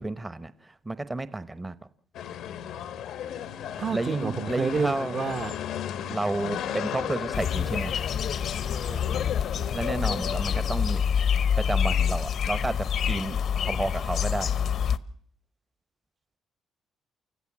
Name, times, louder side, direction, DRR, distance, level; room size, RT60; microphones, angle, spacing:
voice 1, 0.0-1.7 3.9-5.2 6.1-8.0 9.7-11.0 11.6-13.4 13.7-14.8, right 2 dB, 20° right, 0.9 m, -31 dB
sound 1, 2.1-10.7, left 10 dB, 80° left, 1.0 m, -35 dB
sound 2, 3.2-10.8, right 5 dB, 70° right, 6.4 m, -58 dB
voice 2, 3.8-5.5 8.9-9.2, right 5 dB, 45° right, 1.0 m, -30 dB
sound 3, 7.3-15.0, left 8 dB, 65° left, 0.8 m, -27 dB
29.0 x 14.5 x 7.4 m
cardioid pair, 90°, 0 cm